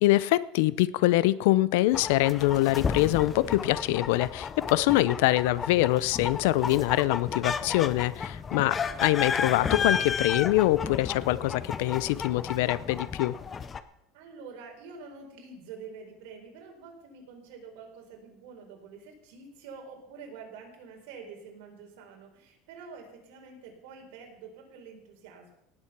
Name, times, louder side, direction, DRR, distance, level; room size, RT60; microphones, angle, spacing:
voice 1, 0.0-13.4, left 17 dB, 75° left, 19 dB, 0.6 m, -24 dB
sound 1, 1.9-13.8, left 6 dB, 20° left, 0.6 m, -33 dB
voice 2, 8.5-9.1 14.1-25.5, right 5 dB, 75° right, 2 dB, 4.3 m, -47 dB
18.0 x 7.8 x 6.0 m, 0.82 s
cardioid pair, 160°, 0 cm